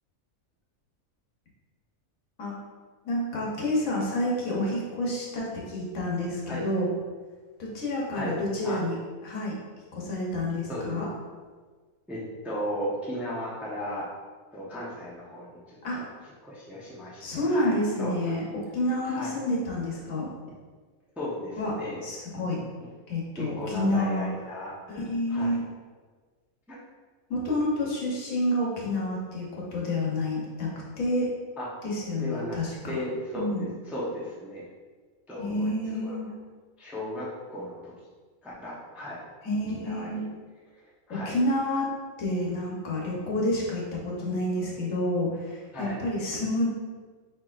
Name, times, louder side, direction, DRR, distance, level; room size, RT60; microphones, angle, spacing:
voice 1, 3.0-6.9 7.6-8.9 9.2-9.5 9.9-11.1 15.8-16.0 17.2-18.4 18.7-20.3 21.6-21.7 22.0-22.6 23.1-24.3 24.9-25.6 27.3-30.7 31.0-31.3 31.8-33.0 33.3-33.6 35.4-36.3 39.4-40.2 41.1-41.9 42.2-46.7, left 1 dB, 70° left, -3 dB, 1.4 m, -29 dB
voice 2, 10.7-11.0 12.1-14.1 14.5-18.4 19.0-19.4 21.2-22.0 22.8-22.9 23.4-25.0 25.3-25.6 26.7-26.8 31.6-31.7 32.1-32.6 32.8-34.7 35.3-36.2 36.8-37.9 38.4-39.2 39.7-40.3 40.7-40.8 41.1-41.4 45.7-46.1, equal, ahead, -6 dB, 0.6 m, -36 dB
4.4 x 4.4 x 2.5 m, 1.4 s
omnidirectional pair, 1.5 m